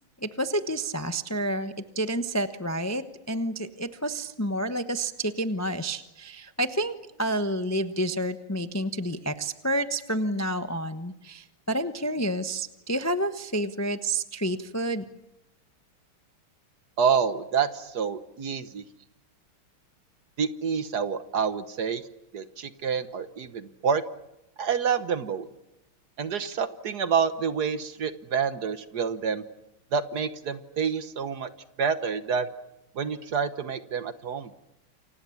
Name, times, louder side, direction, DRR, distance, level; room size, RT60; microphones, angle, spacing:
voice 1, 0.2-6.9 7.2-15.0, right 1 dB, 20° left, 9 dB, 0.4 m, -29 dB
voice 2, 17.0-18.8 20.4-22.0 22.3-24.0 24.6-25.5 26.2-29.4 29.9-31.5 31.8-32.5 32.9-34.5, right 6 dB, 55° right, 12 dB, 1.5 m, -28 dB
29.0 x 25.5 x 7.2 m, 0.92 s
omnidirectional pair, 2.4 m